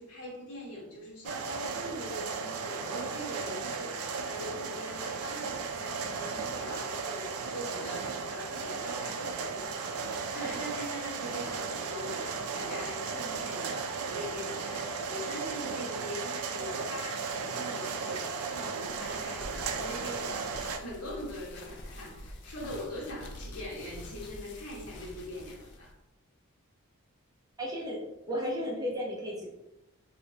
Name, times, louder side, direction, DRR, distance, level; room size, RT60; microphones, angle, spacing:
voice 1, 0.0-25.9, left 1 dB, 80° left, -3 dB, 1.2 m, -42 dB
sound 1, 1.2-20.8, right 5 dB, 85° right, 0.4 m, -35 dB
sound 2, 18.9-25.9, left 1 dB, 50° left, 0.4 m, -47 dB
voice 2, 27.6-29.5, equal, 15° right, -2 dB, 0.5 m, -34 dB
3.2 x 2.7 x 2.7 m, 0.91 s
head